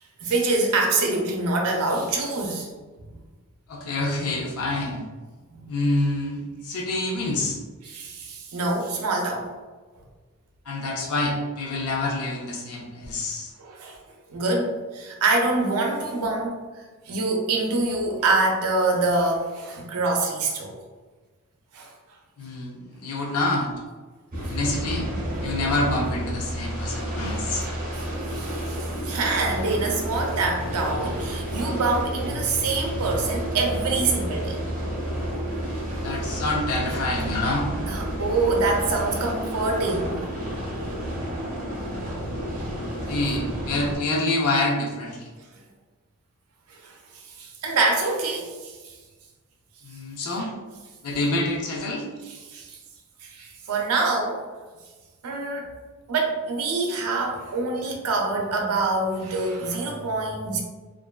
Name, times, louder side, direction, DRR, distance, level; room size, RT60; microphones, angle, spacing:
voice 1, 0.2-2.7 5.5-5.6 7.8-9.5 13.6-14.0 14.3-16.6 17.1-20.8 21.7-21.9 24.4-24.6 27.9-34.6 37.9-40.2 46.7-48.9 50.4-50.5 52.5-52.8 53.2-54.4 55.2-55.7 56.1-60.6, right 3 dB, 85° right, 1 dB, 0.5 m, -25 dB
voice 2, 3.7-5.0 5.7-7.6 10.7-13.5 22.4-23.7 24.5-25.1 25.4-27.7 36.0-37.8 43.1-45.3 49.8-50.5 51.0-52.1, left 2 dB, 85° left, -1 dB, 0.5 m, -27 dB
sound 1, 24.3-44.0, equal, 40° right, 0.6 m, -30 dB
2.5 x 2.2 x 2.2 m, 1.3 s
head